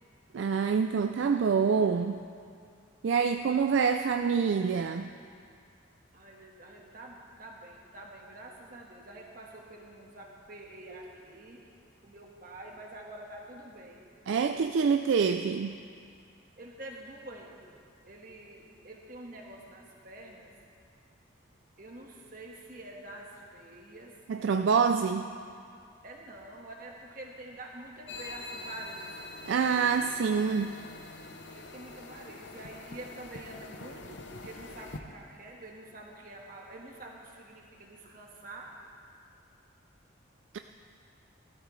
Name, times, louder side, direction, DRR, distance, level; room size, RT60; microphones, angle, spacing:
voice 1, 0.3-2.1 3.0-5.1 14.3-15.8 24.3-25.3 29.5-30.8 40.5-40.6, right 6 dB, 65° right, 7 dB, 0.3 m, -26 dB
voice 2, 6.1-11.7 12.0-14.1 16.6-17.8 18.0-20.5 21.8-24.2 26.0-29.3 31.5-38.7, right 1 dB, 45° right, -1 dB, 1.6 m, -47 dB
sound 1, 28.1-35.0, left 2 dB, 65° left, 0.8 m, -45 dB
17.0 x 13.0 x 3.2 m, 2.3 s
head